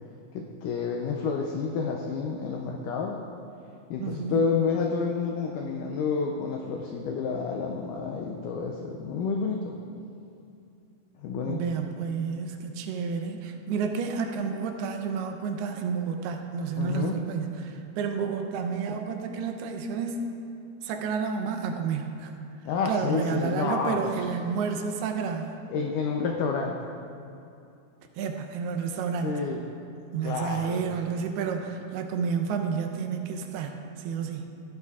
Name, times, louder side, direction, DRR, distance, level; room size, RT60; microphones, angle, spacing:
voice 1, 0.3-3.2 3.9-9.8 11.2-11.6 16.8-17.1 22.7-24.0 25.7-26.8 29.2-29.6 30.2-30.9, left 5 dB, 90° left, 1 dB, 1.8 m, -29 dB
voice 2, 4.0-4.4 11.4-20.3 20.8-22.3 22.9-25.6 28.2-29.3 30.1-34.5, right 6 dB, 85° right, 4 dB, 2.7 m, -30 dB
15.5 x 11.0 x 2.4 m, 2.6 s
omnidirectional pair, 4.5 m